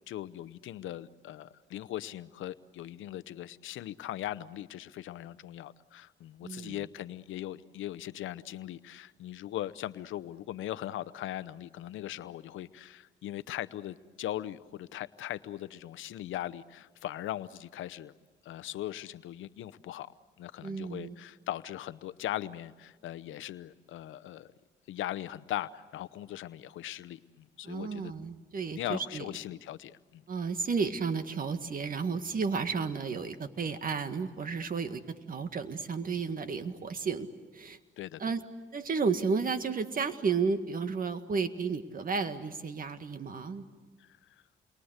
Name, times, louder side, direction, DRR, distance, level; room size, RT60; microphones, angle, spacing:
voice 1, 0.1-18.1 18.4-20.1 20.4-24.5 24.9-28.1 28.7-30.2 38.0-38.2 44.0-44.3, left 13 dB, 80° left, 15 dB, 0.8 m, -39 dB
voice 2, 6.4-6.9 20.6-21.1 27.6-29.2 30.3-37.3 37.5-37.8 38.2-38.4 38.7-43.6, right 5 dB, 45° right, 9 dB, 1.8 m, -32 dB
29.5 x 23.0 x 8.1 m, 1.3 s
cardioid pair, 90°, 20 cm